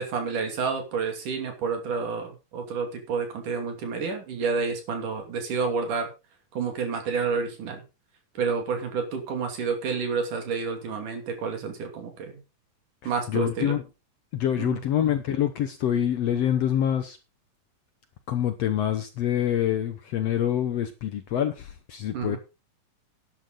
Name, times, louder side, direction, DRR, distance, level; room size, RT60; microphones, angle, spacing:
voice 1, 0.0-6.1 6.5-7.8 8.4-12.4 13.0-13.8 14.6-14.8 22.1-22.4, right 5 dB, 70° right, 4 dB, 4.3 m, -29 dB
voice 2, 13.0-13.8 14.3-17.2 18.3-22.4, left 10 dB, 65° left, 9 dB, 1.7 m, -26 dB
12.0 x 10.5 x 4.0 m, 0.28 s
omnidirectional pair, 3.9 m